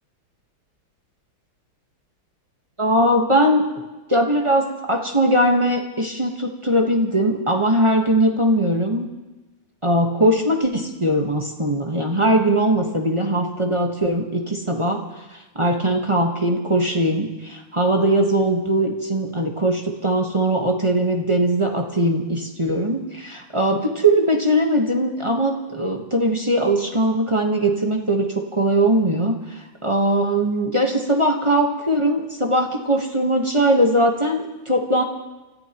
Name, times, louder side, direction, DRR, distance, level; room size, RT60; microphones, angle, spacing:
voice 1, 2.8-3.6 4.1-9.1 9.8-15.0 15.3-35.0, right 1 dB, 20° right, 1 dB, 0.9 m, -20 dB
29.5 x 14.0 x 3.0 m, 1.1 s
omnidirectional pair, 2.2 m